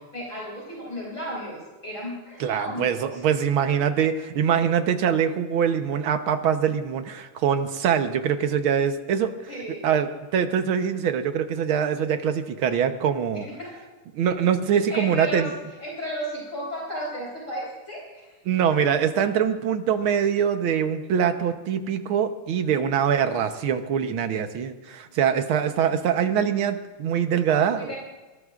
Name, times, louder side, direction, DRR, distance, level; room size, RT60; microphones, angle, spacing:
voice 1, 0.1-3.2 9.5-9.9 13.3-13.8 14.9-15.5 15.8-18.3 27.7-28.0, equal, 35° left, -5 dB, 4.2 m, -34 dB
voice 2, 2.4-9.3 9.8-13.5 14.1-15.5 18.5-27.9, right 8 dB, 70° right, 8 dB, 1.8 m, -23 dB
22.5 x 18.5 x 2.5 m, 1.2 s
omnidirectional pair, 2.4 m